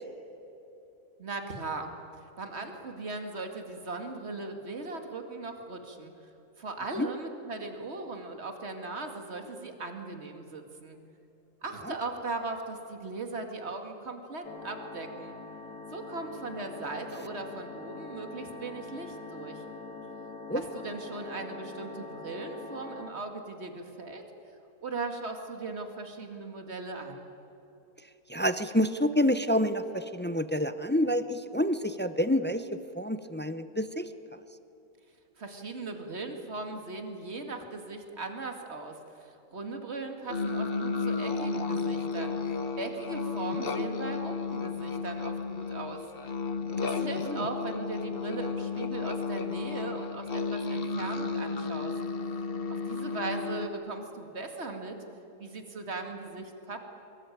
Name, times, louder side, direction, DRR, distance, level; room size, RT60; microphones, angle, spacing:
voice 1, 1.2-1.9 2.4-6.3 6.6-11.0 11.6-15.3 15.9-19.6 20.5-24.2 24.8-27.3 35.4-42.4 42.8-46.1 46.8-52.0 52.7-55.0 55.4-56.8, right 3 dB, 45° right, 5 dB, 2.5 m, -38 dB
sound 1, 14.4-23.1, left 3 dB, 85° left, 2.4 m, -43 dB
voice 2, 28.3-32.7 33.0-34.1 47.2-47.5, equal, 15° left, 11 dB, 0.3 m, -28 dB
sound 2, 40.3-53.7, left 4 dB, 40° left, 1.3 m, -33 dB
24.5 x 22.0 x 9.3 m, 3.0 s
omnidirectional pair, 1.6 m